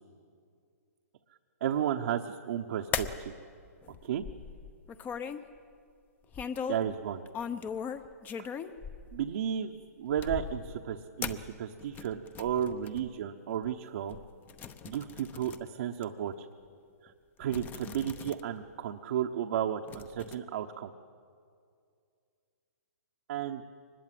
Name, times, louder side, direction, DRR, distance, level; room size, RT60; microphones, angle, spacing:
voice 1, 1.6-3.3 4.0-4.2 6.7-7.2 8.4-8.5 9.1-14.2 14.8-16.5 17.0-17.1 17.4-20.9 23.3-23.6, right 9 dB, 60° right, 3 dB, 1.1 m, -33 dB
sound 1, 2.9-3.2 3.8-5.4 6.3-6.9 7.3-9.5 10.1-10.8 11.2-13.1 13.6-13.7 14.1-15.7 16.0-16.1 17.1-17.2 17.4-18.4 18.7-18.8 19.9-20.4, left 7 dB, 20° left, 0.9 m, -39 dB
23.5 x 20.5 x 7.7 m, 2.3 s
hypercardioid pair, 135°, 9 cm